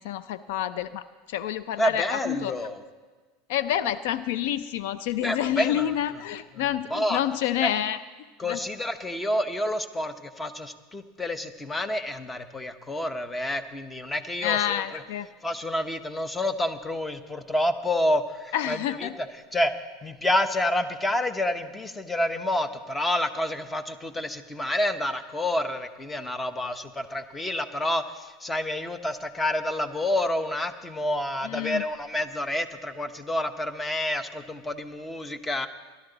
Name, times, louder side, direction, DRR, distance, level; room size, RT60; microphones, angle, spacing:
voice 1, 0.0-2.5 3.5-8.0 8.5-8.6 14.4-15.3 18.5-19.2 31.4-31.8, left 11 dB, 75° left, 14 dB, 0.4 m, -28 dB
voice 2, 1.8-2.8 5.2-5.9 6.6-6.7 6.9-7.2 7.6-7.7 8.4-15.0 15.4-19.3 19.5-19.7 20.0-35.7, left 1 dB, 15° left, 11 dB, 0.9 m, -28 dB
17.5 x 12.0 x 4.0 m, 1.4 s
supercardioid pair, 110°, 0 cm